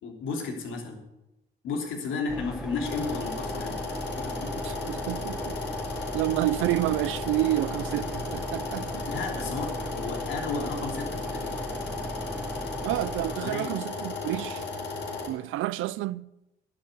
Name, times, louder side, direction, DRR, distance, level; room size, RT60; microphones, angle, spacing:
voice 1, 0.0-1.0 1.6-3.8 4.1-4.5 8.9-11.6 13.4-13.7, left 4 dB, 80° left, 3.3 m, -33 dB
sound 1, 2.3-13.4, right 1 dB, 5° right, 1.0 m, -37 dB
sound 2, 2.8-15.3, left 4 dB, 60° left, 5.0 m, -35 dB
voice 2, 4.6-5.6 6.1-9.0 12.8-14.7 15.3-16.3, right 16 dB, 90° right, 0.5 m, -29 dB
11.0 x 8.8 x 8.1 m
cardioid pair, 90°, 20 cm